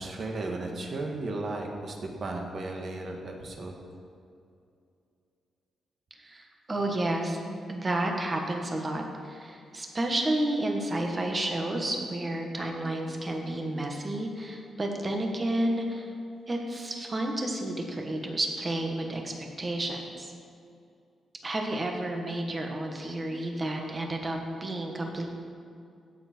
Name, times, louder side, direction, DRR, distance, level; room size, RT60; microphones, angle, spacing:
voice 1, 0.0-3.7, right 2 dB, 45° right, 1 dB, 1.7 m, -35 dB
voice 2, 6.2-7.4 7.7-16.1 16.5-19.3 19.6-20.3 21.4-25.3, right 1 dB, 25° right, 2 dB, 1.5 m, -31 dB
16.5 x 7.3 x 4.5 m, 2.5 s
wide cardioid pair, 140°, 0 cm